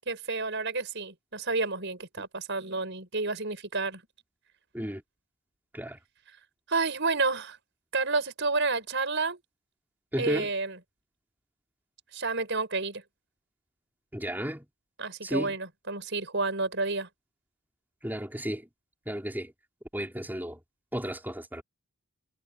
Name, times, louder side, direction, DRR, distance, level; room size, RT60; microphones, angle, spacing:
voice 1, 0.1-4.0 6.7-7.6 7.9-9.4 10.2-10.8 12.1-13.0 15.0-17.1, right 3 dB, 55° right, 5.9 m, -30 dB
voice 2, 10.1-10.5 14.1-14.6 15.2-15.5 18.0-18.6 19.1-19.5 19.9-20.6 20.9-21.6, equal, 10° right, 5.6 m, -33 dB
head